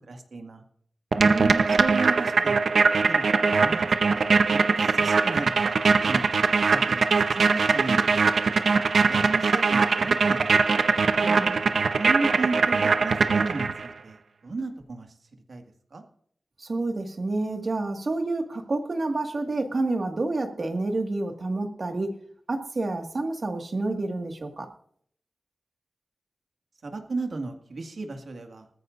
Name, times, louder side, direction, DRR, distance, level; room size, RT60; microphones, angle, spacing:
voice 1, 0.1-0.6 1.7-2.8 3.1-3.8 4.1-6.4 6.7-8.5 9.0-10.6 12.0-15.1 15.5-15.6 15.9-16.0 26.8-28.7, right 3 dB, 65° right, 4 dB, 2.0 m, -34 dB
sound 1, 1.1-13.9, right 4 dB, 85° right, 0.9 m, -22 dB
voice 2, 1.2-1.8 11.1-11.5 16.6-22.2 22.5-24.7, right 2 dB, 50° right, 4 dB, 1.9 m, -29 dB
20.0 x 14.5 x 2.6 m, 0.62 s
wide cardioid pair, 100°, 0 cm